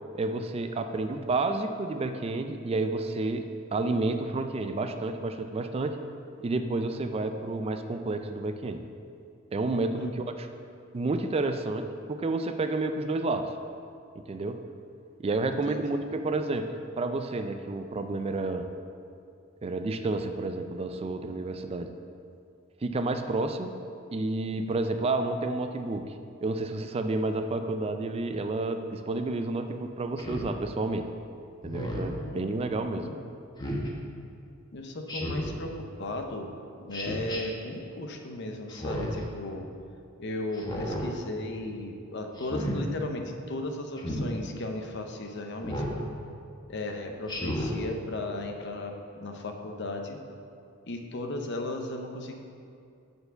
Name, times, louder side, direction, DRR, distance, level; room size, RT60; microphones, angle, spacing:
voice 1, 0.1-6.0 6.4-8.8 9.5-10.5 10.9-13.5 14.2-14.6 15.2-18.7 19.6-21.9 22.8-23.7 24.1-26.1 26.4-31.1 31.6-33.1, right 2 dB, 30° right, 7 dB, 0.3 m, -30 dB
voice 2, 9.9-10.3 15.7-16.0 32.1-32.6 32.9-33.2 34.7-36.5 36.8-39.7 40.2-45.9 46.7-50.2 50.9-52.4, left 2 dB, 60° left, 4 dB, 0.7 m, -36 dB
Speech synthesizer, 30.2-30.5 31.6-32.1 33.6-33.9 35.1-35.6 36.9-37.4 38.7-39.2 40.5-41.0 42.4-42.8 44.0-44.3 45.6-46.0 47.3-47.8, equal, 20° left, 0.9 m, -33 dB
6.7 x 4.5 x 6.7 m, 2.4 s
head